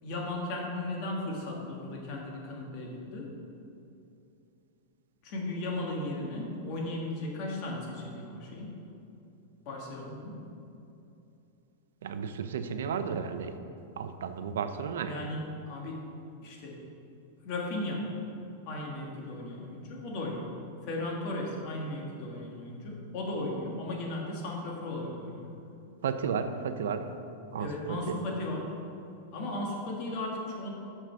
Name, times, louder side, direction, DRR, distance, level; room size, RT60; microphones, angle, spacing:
voice 1, 0.0-3.3 5.2-8.8 9.6-10.4 15.0-16.0 16.4-16.8 17.4-18.2 18.7-20.6 20.8-25.5 27.6-28.7 29.3-30.7, left 2 dB, 40° left, -1 dB, 1.5 m, -36 dB
voice 2, 12.0-13.5 14.0-15.2 26.0-27.0 27.5-28.2, right 6 dB, 90° right, 9 dB, 0.5 m, -33 dB
6.0 x 5.4 x 5.6 m, 2.8 s
supercardioid pair, 165°, 0 cm